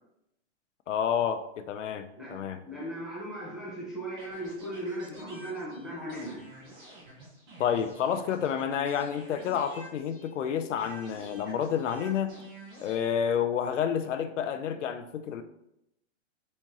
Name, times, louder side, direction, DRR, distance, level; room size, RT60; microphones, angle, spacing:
voice 1, 0.9-2.6 7.6-12.3 12.8-15.4, left 8 dB, 85° left, 9 dB, 0.6 m, -29 dB
voice 2, 2.7-6.5, right 1 dB, ahead, -7 dB, 0.6 m, -37 dB
sound 1, 4.2-10.4 10.8-13.0, right 1 dB, 40° right, 1.5 m, -49 dB
4.3 x 3.6 x 3.0 m, 0.81 s
hypercardioid pair, 160°, 36 cm